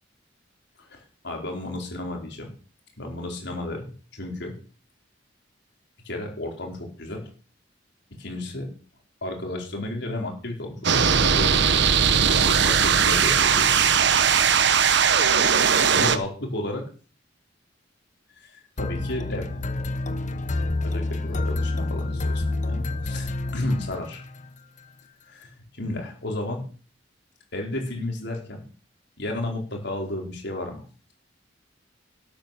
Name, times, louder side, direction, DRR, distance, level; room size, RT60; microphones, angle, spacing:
voice 1, 0.8-2.5 3.0-4.5 6.0-7.3 8.2-8.7 9.2-12.0 12.3-13.9 15.9-16.8 18.4-19.5 20.8-24.2 25.3-25.5 25.8-26.7 27.5-28.7 29.2-30.8, left 1 dB, 65° left, 2 dB, 4.7 m, -33 dB
sound 1, 10.8-16.2, right 7 dB, 65° right, 1.1 m, -19 dB
sound 2, 18.8-24.5, left 2 dB, 40° left, 1.0 m, -28 dB
12.5 x 9.1 x 7.0 m, 0.39 s
head